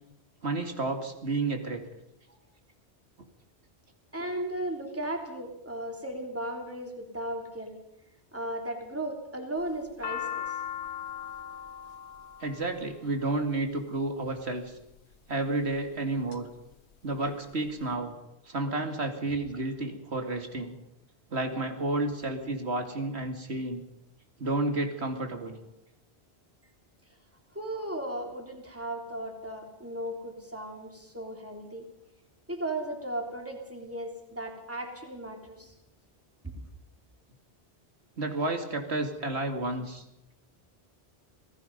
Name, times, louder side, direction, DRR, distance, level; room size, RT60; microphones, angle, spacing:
voice 1, 0.4-1.8 12.4-14.8 15.3-16.5 17.0-18.1 18.5-20.8 21.3-23.8 24.4-25.6 38.2-40.0, right 2 dB, 75° right, 5 dB, 2.6 m, -31 dB
voice 2, 4.1-7.8 8.3-10.5 27.5-31.9 32.5-35.7 36.4-36.5, right 1 dB, 10° right, 2 dB, 3.3 m, -36 dB
sound 1, 9.6-13.8 14.7-15.1 15.7-16.4 16.7-16.8 17.0-17.8, left 9 dB, 75° left, 1.4 m, -38 dB
27.0 x 18.0 x 5.4 m, 0.86 s
omnidirectional pair, 1.1 m